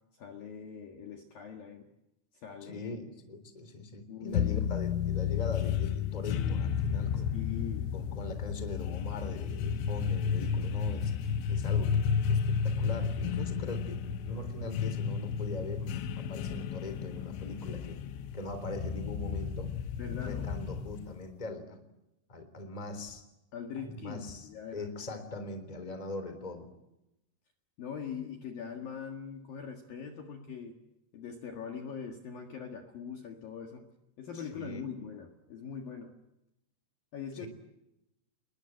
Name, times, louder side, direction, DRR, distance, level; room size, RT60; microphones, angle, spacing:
voice 1, 0.1-1.9 2.3-3.0 4.1-4.6 7.3-7.9 20.0-20.6 23.5-24.9 27.8-30.8 31.1-33.9 34.2-36.2 37.1-37.5, left 7 dB, 55° left, 4 dB, 3.0 m, -42 dB
voice 2, 2.6-7.3 7.9-11.1 11.5-15.9 16.2-18.0 18.3-19.7 20.2-21.8 22.3-23.2 23.8-24.5 24.7-26.7 34.3-34.9 37.4-37.5, left 2 dB, 10° left, 9 dB, 2.7 m, -41 dB
sound 1, 4.3-21.1, left 7 dB, 70° left, 3.2 m, -32 dB
29.0 x 21.5 x 9.0 m, 0.90 s
omnidirectional pair, 5.8 m